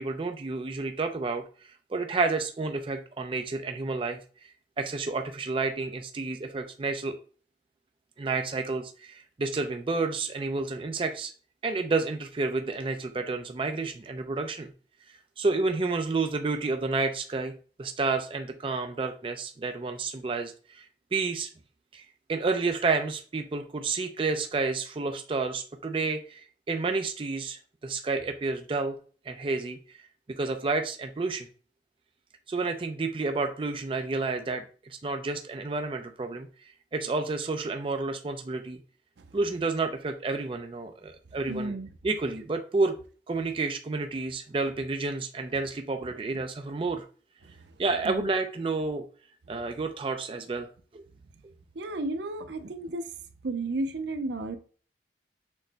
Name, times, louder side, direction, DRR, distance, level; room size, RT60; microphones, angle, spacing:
voice 1, 0.0-4.5 4.8-7.2 8.2-11.3 11.6-14.7 15.4-17.5 17.8-21.5 21.9-29.0 29.3-29.8 30.3-31.5 32.5-36.5 36.9-38.8 39.3-41.7 42.0-43.0 43.3-47.0 47.8-49.1 49.5-50.7 50.9-51.0, right 3 dB, 30° right, 0.4 m, -30 dB
voice 2, 41.5-41.9 48.0-48.3 51.8-53.1 53.4-54.6, right 2 dB, 80° right, 0.6 m, -32 dB
6.4 x 2.1 x 3.9 m
head